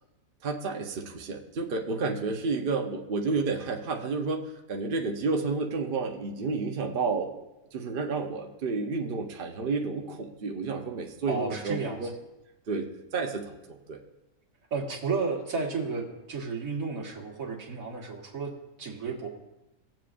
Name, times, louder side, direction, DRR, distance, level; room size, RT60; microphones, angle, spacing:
voice 1, 0.4-12.1 12.7-14.0, right 4 dB, 45° right, 1 dB, 0.8 m, -31 dB
voice 2, 11.3-12.1 14.7-18.5 18.8-19.3, right 4 dB, 65° right, 0 dB, 1.9 m, -32 dB
17.5 x 7.5 x 2.5 m, 0.96 s
omnidirectional pair, 1.6 m